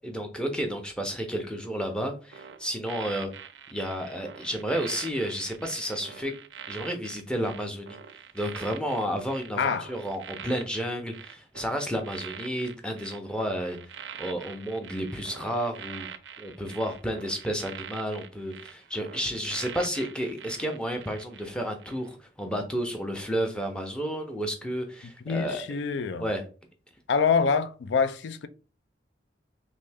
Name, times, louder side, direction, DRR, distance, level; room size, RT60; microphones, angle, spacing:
voice 1, 0.0-3.3 3.7-6.3 6.7-8.0 8.3-13.8 14.2-16.1 16.4-25.6 26.2-26.4, equal, 5° left, 0.6 m, -31 dB
sound 1, 2.3-21.5 21.8-22.1, right 8 dB, 85° right, 0.4 m, -44 dB
voice 2, 9.6-9.9 25.3-26.3 27.1-28.5, left 5 dB, 80° left, 0.4 m, -25 dB
3.2 x 2.6 x 3.4 m
head